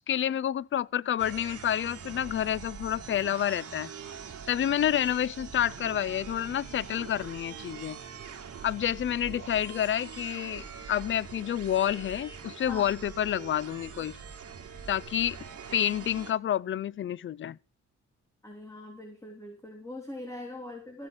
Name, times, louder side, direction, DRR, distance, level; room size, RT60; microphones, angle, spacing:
voice 1, 0.0-3.9 4.5-8.0 8.6-14.1 14.9-15.4 15.7-17.6, left 10 dB, 40° left, 0.5 m, -29 dB
sound 1, 1.2-16.3, right 6 dB, 55° right, 2.7 m, -43 dB
voice 2, 18.4-21.1, left 1 dB, 10° left, 3.4 m, -42 dB
15.0 x 8.0 x 5.1 m
cardioid pair, 90°, 30 cm